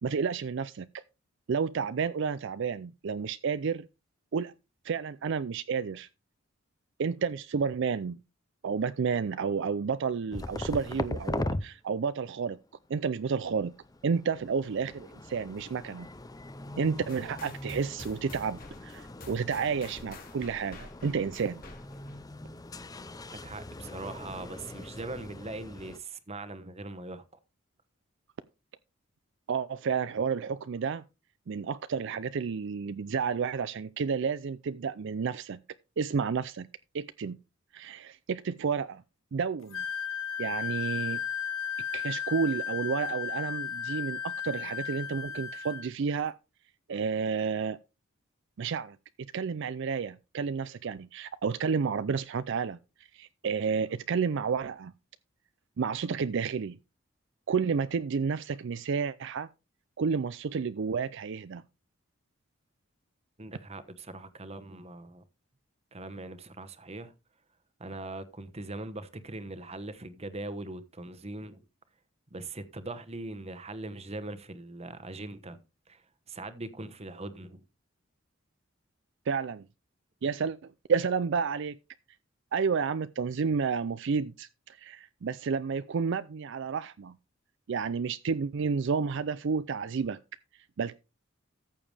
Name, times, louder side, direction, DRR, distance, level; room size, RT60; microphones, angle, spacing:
voice 1, 0.0-0.9 1.5-3.9 4.3-4.5 4.8-6.1 7.0-8.2 8.6-12.6 12.9-13.7 14.0-16.1 16.8-21.6 29.5-31.0 31.5-35.6 36.0-36.7 36.9-37.4 37.7-39.0 39.3-39.8 40.4-41.2 41.9-46.4 46.9-47.8 48.6-49.0 49.3-52.8 53.1-54.9 55.8-56.8 57.5-59.5 60.0-61.6 79.3-79.6 80.2-81.8 82.5-87.1 87.7-90.2 90.8-90.9, right 5 dB, 60° right, 0.4 m, -31 dB
sound 1, 10.3-11.6 13.3-26.0, left 2 dB, 20° left, 0.6 m, -40 dB
sound 2, 17.1-22.2, left 2 dB, 45° left, 2.7 m, -49 dB
voice 2, 23.4-27.2 63.4-65.2 65.9-67.1 67.8-71.6 72.3-75.6 75.9-77.6, right 2 dB, 30° right, 1.1 m, -41 dB
Wind instrument woodwind instrument, 39.7-45.9, left 8 dB, 80° left, 1.1 m, -34 dB
14.0 x 7.0 x 3.3 m
head